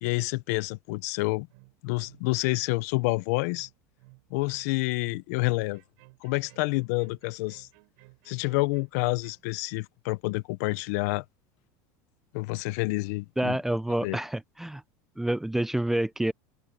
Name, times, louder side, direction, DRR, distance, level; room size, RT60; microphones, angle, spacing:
voice 1, 0.0-1.5 1.8-3.7 4.3-5.8 6.2-7.7 8.3-11.2 12.3-13.6 14.0-14.2, left 23 dB, 70° left, 0.7 m, -28 dB
sound 1, 1.5-9.5, right 31 dB, 70° right, 7.6 m, -57 dB
voice 2, 13.4-14.8 15.2-16.3, right 1 dB, 5° right, 0.4 m, -28 dB
open air
supercardioid pair, 150°, 9 cm